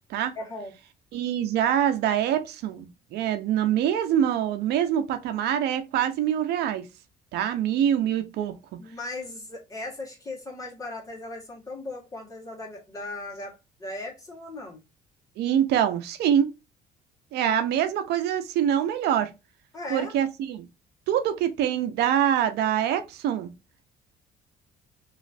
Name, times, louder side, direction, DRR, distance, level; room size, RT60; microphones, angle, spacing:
voice 1, 0.4-0.7 8.8-14.8 19.7-20.1, left 2 dB, 20° left, 1.8 m, -37 dB
voice 2, 1.1-6.8 7.3-8.5 15.4-16.5 17.3-19.3 19.9-20.7 21.1-23.5, right 10 dB, 80° right, 0.6 m, -25 dB
3.1 x 3.1 x 2.5 m
cardioid pair, 110°, 17 cm